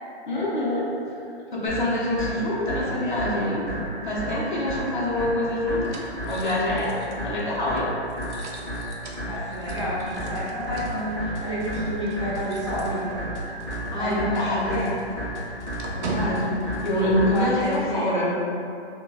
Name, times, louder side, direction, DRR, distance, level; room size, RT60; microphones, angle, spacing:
voice 1, 0.3-0.9 1.5-3.6 4.0-5.9 6.2-7.9 13.9-14.8 15.9-18.4, left 1 dB, 45° left, -5 dB, 0.6 m, -25 dB
sound 1, 1.7-17.6, right 1 dB, 10° left, 0.6 m, -33 dB
sound 2, 4.9-13.5 13.8-14.0 14.3-17.8, right 2 dB, 85° right, 0.6 m, -40 dB
voice 2, 9.2-13.2 13.9-14.9 17.3-18.1, equal, 30° right, -11 dB, 0.4 m, -30 dB
sound 3, 9.9-17.9, left 2 dB, 85° left, 0.8 m, -43 dB
2.4 x 2.2 x 3.8 m, 2.6 s
hypercardioid pair, 180°, 34 cm